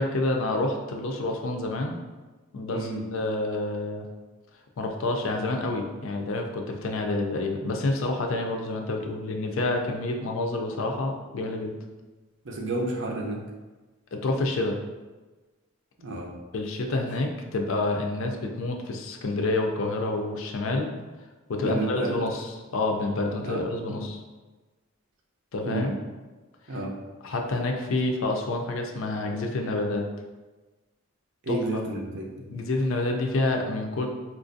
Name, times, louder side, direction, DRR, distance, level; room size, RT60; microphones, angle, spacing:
voice 1, 0.0-1.9 2.5-4.1 4.8-11.7 14.1-14.8 16.5-20.9 21.5-24.2 25.5-25.9 27.2-30.0 31.5-31.8 32.5-34.1, left 2 dB, 60° left, 2 dB, 0.4 m, -28 dB
voice 2, 2.7-3.0 12.4-13.4 16.0-16.3 21.6-22.2 23.4-24.0 25.6-25.9 26.7-26.9 31.4-32.3, right 2 dB, 55° right, -1 dB, 0.6 m, -31 dB
4.4 x 2.4 x 2.5 m, 1.2 s
head